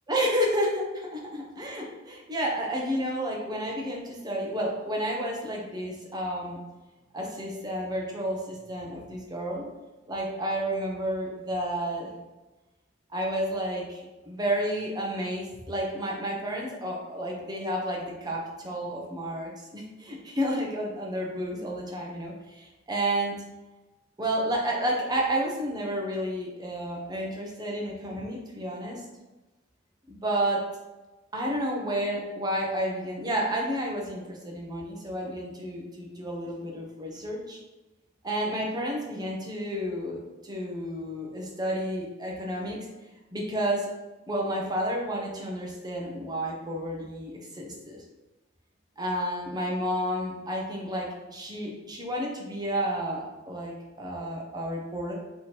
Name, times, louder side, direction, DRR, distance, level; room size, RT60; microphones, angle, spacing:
voice 1, 0.1-6.6 7.1-9.7 10.1-12.1 13.1-23.4 24.2-29.0 30.1-30.6 31.3-37.6 38.2-42.8 43.3-43.9 44.3-48.0 49.0-55.1, right 1 dB, 20° right, -2 dB, 0.8 m, -31 dB
3.4 x 3.0 x 4.4 m, 1.1 s
head